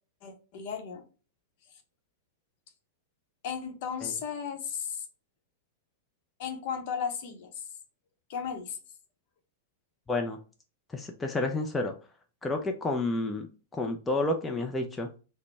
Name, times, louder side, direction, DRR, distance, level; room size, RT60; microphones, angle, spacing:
voice 1, 0.2-1.0 3.4-5.0 6.4-7.6 8.3-8.8, left 7 dB, 55° left, 0.8 m, -35 dB
voice 2, 10.1-10.4 10.9-11.9 12.4-13.5 13.7-15.1, left 2 dB, 15° left, 0.5 m, -30 dB
3.9 x 2.1 x 3.2 m
hypercardioid pair, 100°, 0 cm